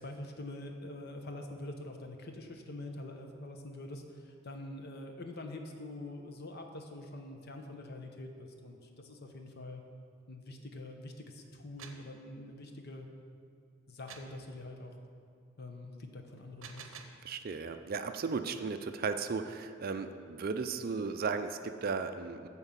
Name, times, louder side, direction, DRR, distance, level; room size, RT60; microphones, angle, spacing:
voice 1, 0.0-9.8 10.3-13.1 13.9-14.9 15.6-16.8, left 1 dB, 50° left, 4 dB, 0.9 m, -45 dB
sound 1, 11.6-12.1 14.1-14.4 16.4-17.2, right 6 dB, 75° right, 0.7 m, -49 dB
voice 2, 17.2-22.5, right 5 dB, 45° right, 9 dB, 0.4 m, -35 dB
10.5 x 4.5 x 7.3 m, 2.4 s
head